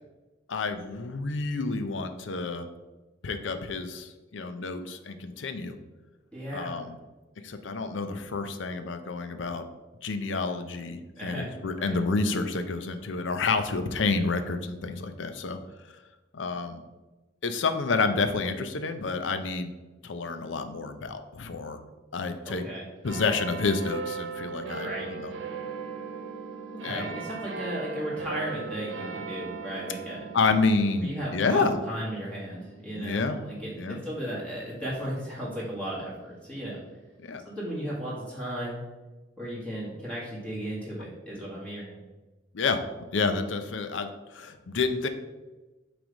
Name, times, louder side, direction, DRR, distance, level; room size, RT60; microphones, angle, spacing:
voice 1, 0.5-2.7 3.2-5.8 6.5-7.0 7.4-9.6 10.0-15.6 16.3-16.8 17.4-19.7 20.0-21.8 22.1-22.6 23.0-25.3 26.8-27.2 30.3-31.8 32.9-33.4 33.8-34.0 37.2-37.4 42.5-42.8 43.1-45.1, left 4 dB, 75° left, 9 dB, 0.6 m, -29 dB
voice 2, 6.3-6.7 11.2-11.5 11.8-12.0 22.4-22.8 24.8-25.1 26.7-30.2 31.0-36.8 37.4-38.8 39.4-42.0, equal, 5° left, -7 dB, 1.6 m, -35 dB
sound 1, 23.0-35.9 36.6-36.7, right 5 dB, 75° right, 1.0 m, -39 dB
6.0 x 3.4 x 5.1 m, 1.1 s
head